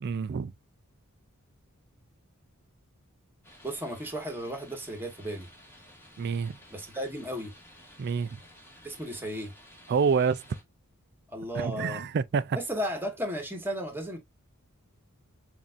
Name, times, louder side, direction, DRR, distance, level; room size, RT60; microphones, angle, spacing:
voice 1, 0.0-0.5 6.2-6.6 8.0-8.4 9.9-10.4 11.5-12.6, right 5 dB, 50° right, 0.4 m, -27 dB
sound 1, 3.4-10.6, left 1 dB, 10° left, 1.8 m, -54 dB
voice 2, 3.6-5.5 6.7-7.5 8.8-9.5 11.3-12.0 12.5-14.2, equal, 10° right, 1.5 m, -34 dB
7.2 x 2.7 x 2.4 m
head